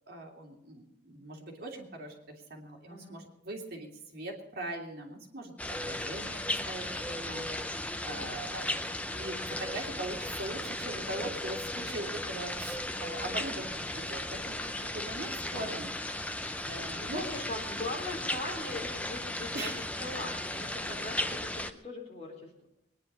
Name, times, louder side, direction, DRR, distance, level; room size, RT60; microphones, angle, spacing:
voice 1, 0.1-15.9 16.6-17.3 19.5-19.9, right 2 dB, 50° right, 0 dB, 3.0 m, -41 dB
sound 1, 5.6-21.7, left 1 dB, 5° left, 0.6 m, -36 dB
voice 2, 16.9-22.5, left 2 dB, 35° left, -1 dB, 3.9 m, -41 dB
22.0 x 10.5 x 5.5 m, 0.81 s
head